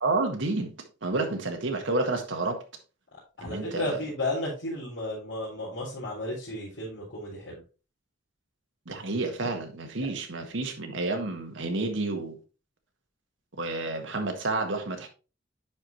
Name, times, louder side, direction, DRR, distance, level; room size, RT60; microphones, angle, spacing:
voice 1, 0.0-0.7 1.0-2.6 3.4-4.0 8.9-12.4 13.6-15.1, right 2 dB, 75° right, 1.6 m, -30 dB
voice 2, 3.4-7.6, left 1 dB, 70° left, 4.0 m, -33 dB
10.5 x 4.8 x 3.0 m
head